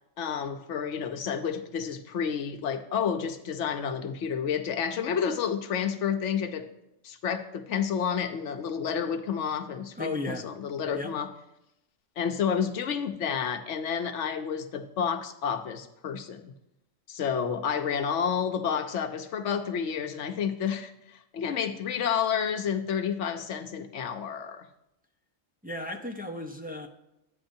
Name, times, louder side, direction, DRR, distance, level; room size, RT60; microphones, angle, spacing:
voice 1, 0.2-6.7 7.0-11.3 12.2-16.5 17.1-24.7, left 7 dB, 65° left, 7 dB, 1.0 m, -30 dB
voice 2, 10.0-10.5 10.9-11.1 25.6-26.9, left 2 dB, 15° right, 0 dB, 0.3 m, -35 dB
11.5 x 9.2 x 2.6 m, 0.86 s
omnidirectional pair, 1.4 m